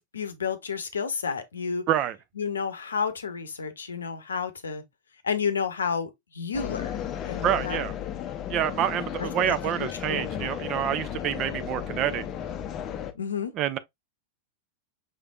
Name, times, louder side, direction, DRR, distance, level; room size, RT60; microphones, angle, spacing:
voice 1, 0.0-1.8 2.4-4.8 5.2-7.8 9.2-10.3 13.1-13.5, left 6 dB, 70° left, 0.7 m, -31 dB
sound 1, 6.5-13.1, left 9 dB, 30° left, 0.6 m, -34 dB
voice 2, 7.4-7.9 8.5-12.2 13.6-13.8, right 11 dB, 35° right, 0.5 m, -27 dB
5.5 x 3.3 x 2.3 m
figure-of-eight pair, 90°, 0 cm